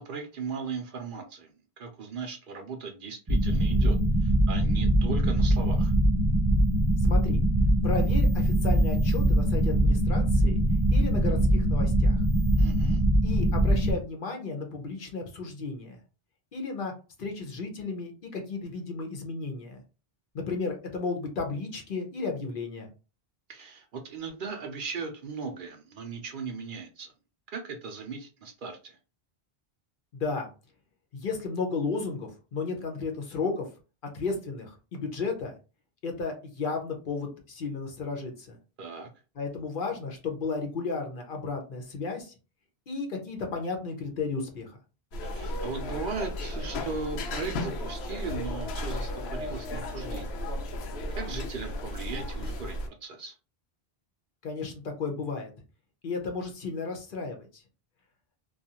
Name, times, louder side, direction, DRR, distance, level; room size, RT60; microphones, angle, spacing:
voice 1, 0.0-1.5 1.8-5.9 12.6-13.0 23.5-27.1 27.5-29.0 38.8-39.1 45.2-50.4 51.2-53.4, right 5 dB, 60° right, 4 dB, 0.7 m, -38 dB
sound 1, 3.3-13.9, right 1 dB, 25° right, 0.6 m, -23 dB
voice 2, 7.0-7.4 7.8-10.6 10.9-12.2 13.2-16.0 16.5-16.9 17.2-19.8 20.3-22.9 30.1-30.5 31.1-33.6 34.1-35.5 36.0-38.6 39.4-42.3 42.9-44.7 54.4-55.5 56.0-57.6, left 4 dB, 60° left, 2 dB, 0.8 m, -33 dB
sound 2, 45.1-52.9, left 1 dB, 90° left, 0.8 m, -34 dB
2.4 x 2.3 x 2.7 m, 0.33 s
omnidirectional pair, 1.1 m